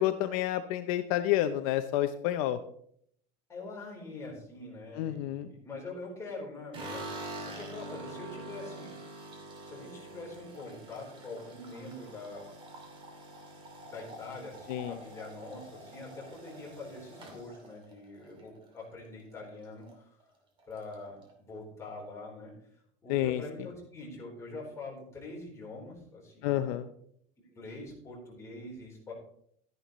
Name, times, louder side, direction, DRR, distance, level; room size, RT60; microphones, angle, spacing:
voice 1, 0.0-2.6 5.0-5.5 14.7-15.0 23.1-23.4 26.4-26.9, left 13 dB, 70° left, 9 dB, 0.7 m, -29 dB
voice 2, 3.5-8.9 9.1-9.3 9.6-12.5 13.8-20.1 20.7-22.5 23.0-26.7 27.5-29.1, left 2 dB, 15° left, -3 dB, 3.8 m, -44 dB
sound 1, 6.7-19.0 19.3-19.9 20.2-20.3 20.6-21.3, right 1 dB, 25° right, 2.5 m, -46 dB
12.5 x 10.5 x 3.1 m, 0.67 s
cardioid pair, 170°, 19 cm